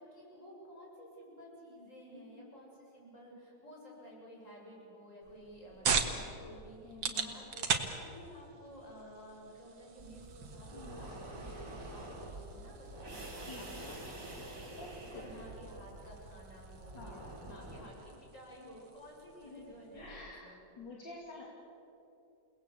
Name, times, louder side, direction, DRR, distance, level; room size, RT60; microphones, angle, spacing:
voice 1, 0.0-20.5 20.8-21.0, equal, 40° left, -3 dB, 7.5 m, -53 dB
voice 2, 2.1-2.5 6.8-7.4 10.7-11.0 13.5-13.9 14.8-15.2 16.9-17.3 19.4-21.4, left 3 dB, 70° left, -3 dB, 3.4 m, -50 dB
sound 1, 5.2-20.3, right 6 dB, 75° right, 2.4 m, -41 dB
sound 2, 10.0-17.9, right 2 dB, 45° right, 4.0 m, -47 dB
29.0 x 19.5 x 8.5 m, 2.9 s
omnidirectional pair, 2.1 m